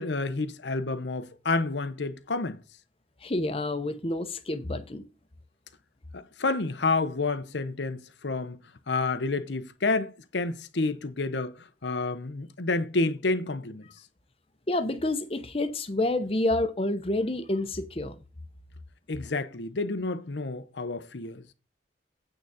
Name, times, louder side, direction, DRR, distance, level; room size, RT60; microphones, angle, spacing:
voice 1, 0.0-2.6 6.1-8.6 8.9-11.5 11.8-13.8 19.1-21.5, left 3 dB, 80° left, 0.8 m, -29 dB
voice 2, 3.2-5.0 14.7-18.2, left 2 dB, 30° left, 0.9 m, -28 dB
8.9 x 3.9 x 6.9 m
head